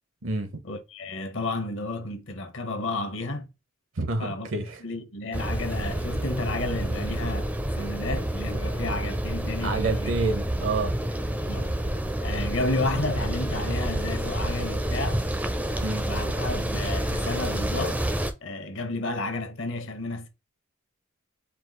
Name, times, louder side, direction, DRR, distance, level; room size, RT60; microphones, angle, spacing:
voice 1, 0.6-3.5 4.2-10.1 11.5-11.7 12.2-15.2 16.0-18.1 18.4-20.3, left 2 dB, 65° left, 1.0 m, -32 dB
voice 2, 4.0-4.8 9.6-11.0 15.8-16.1, right 3 dB, 70° right, 0.7 m, -28 dB
sound 1, 5.3-18.3, right 1 dB, 5° right, 0.4 m, -29 dB
4.7 x 2.4 x 3.7 m
head